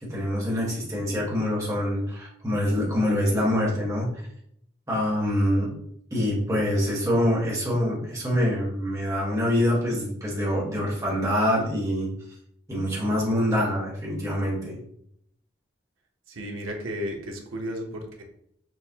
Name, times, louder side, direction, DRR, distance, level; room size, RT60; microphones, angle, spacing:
voice 1, 0.0-4.1 4.9-5.7 6.1-12.1 12.7-14.8, equal, 15° right, -4 dB, 1.2 m, -25 dB
voice 2, 16.3-18.2, equal, 85° right, 1 dB, 0.9 m, -33 dB
6.4 x 2.2 x 2.8 m, 0.70 s
head